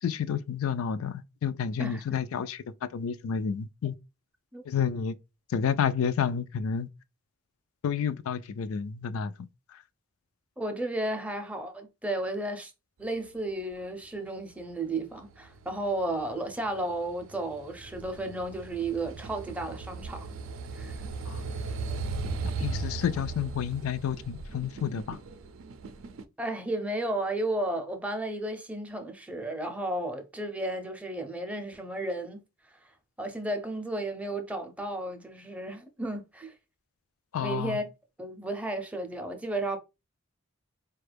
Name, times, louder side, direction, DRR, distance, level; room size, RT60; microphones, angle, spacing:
voice 1, 0.0-3.9 4.6-5.1 5.5-6.9 7.8-9.8 21.3-21.5 22.4-25.2 37.3-37.8, left 7 dB, 85° left, 0.4 m, -30 dB
voice 2, 10.6-12.7 13.0-20.3 20.7-20.9 26.4-32.4 32.8-32.9 33.2-36.5 37.4-37.9 38.2-39.8, right 1 dB, 5° right, 0.5 m, -33 dB
sound 1, 14.9-26.2, right 3 dB, 80° right, 0.4 m, -37 dB
4.3 x 2.3 x 3.3 m
head